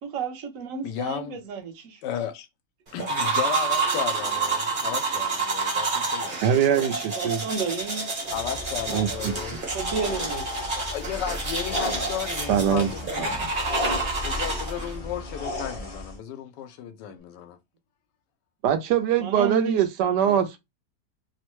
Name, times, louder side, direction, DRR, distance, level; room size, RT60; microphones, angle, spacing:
voice 1, 0.0-2.0 7.2-8.3 9.7-10.5 19.2-20.4, right 5 dB, 60° right, 1.0 m, -32 dB
voice 2, 0.8-1.4 2.0-2.5 2.9-6.4 8.3-9.6 10.9-13.5 14.2-17.6, left 9 dB, 85° left, 1.2 m, -34 dB
sound 1, 3.0-15.0, right 4 dB, 35° right, 1.0 m, -29 dB
voice 3, 6.4-7.4 8.9-9.3 12.5-12.9 13.2-13.5 18.6-20.6, right 9 dB, 80° right, 1.2 m, -23 dB
sound 2, 8.2-16.2, left 2 dB, 50° left, 0.4 m, -34 dB
3.1 x 2.1 x 3.0 m
omnidirectional pair, 1.8 m